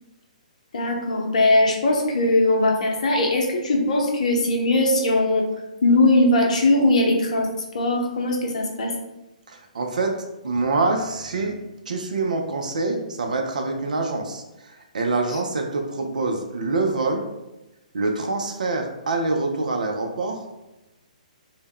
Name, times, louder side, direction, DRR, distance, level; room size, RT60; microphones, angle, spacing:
voice 1, 0.7-5.5 5.8-7.5 7.7-8.9, left 2 dB, 60° left, 1 dB, 0.6 m, -20 dB
voice 2, 9.5-10.1 10.4-11.6 11.9-14.4 14.9-17.3 17.9-20.4, right 3 dB, 70° right, 3 dB, 0.4 m, -25 dB
2.1 x 2.1 x 3.4 m, 0.99 s
figure-of-eight pair, 130°, 4 cm